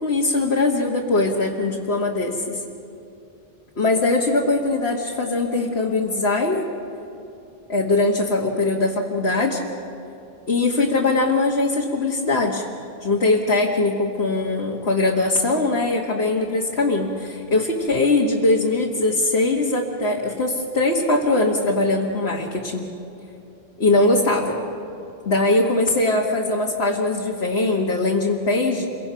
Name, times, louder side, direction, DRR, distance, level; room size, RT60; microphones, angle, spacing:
voice 1, 0.0-2.6 3.8-6.7 7.7-9.6 10.5-12.6 13.0-22.9 23.8-24.6 25.3-28.9, left 2 dB, 90° left, -2 dB, 1.9 m, -21 dB
28.5 x 23.5 x 5.8 m, 2.9 s
omnidirectional pair, 1.0 m